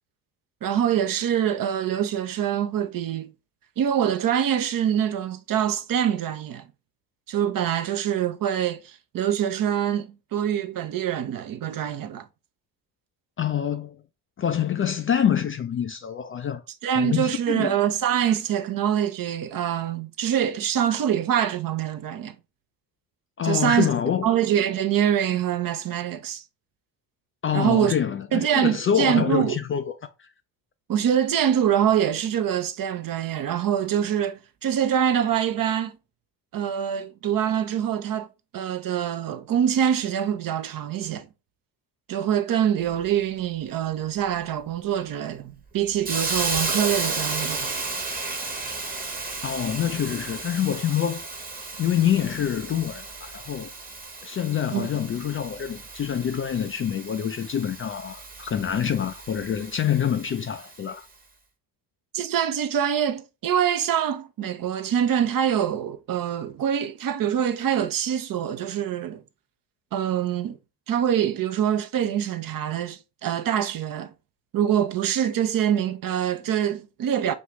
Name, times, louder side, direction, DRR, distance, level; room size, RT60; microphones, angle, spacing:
voice 1, 0.6-3.3 3.8-6.6 7.3-12.3 16.8-22.3 23.4-23.9 24.2-26.4 27.5-27.9 28.3-29.6 30.9-36.0 36.5-38.3 38.5-41.3 42.1-47.7 54.7-54.9 62.1-69.2 69.9-70.6 70.9-74.1 74.5-77.3, right 9 dB, 45° right, 0.7 m, -24 dB
voice 2, 13.4-14.0 14.4-16.6 17.0-17.7 23.4-24.3 27.4-29.9 30.2-30.3 49.4-51.3 51.8-53.7 54.2-61.1, left 9 dB, 30° left, 0.4 m, -26 dB
Hiss, 46.0-60.8, right 3 dB, 20° right, 1.0 m, -33 dB
6.3 x 2.4 x 3.0 m
hypercardioid pair, 55°, 48 cm